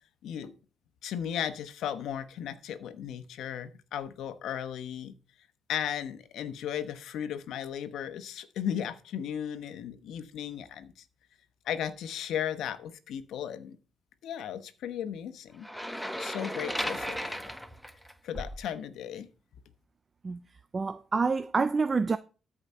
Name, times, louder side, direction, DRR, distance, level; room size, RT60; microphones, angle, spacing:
voice 1, 0.2-0.5 1.0-5.1 5.7-10.9 11.7-13.8 14.2-15.7 16.2-17.4 18.2-19.3, left 9 dB, 80° left, 1.1 m, -35 dB
sound 1, 15.6-18.7, equal, ahead, 0.9 m, -35 dB
voice 2, 20.7-22.2, right 4 dB, 30° right, 0.5 m, -27 dB
13.5 x 5.0 x 5.6 m
cardioid pair, 90°, 0 cm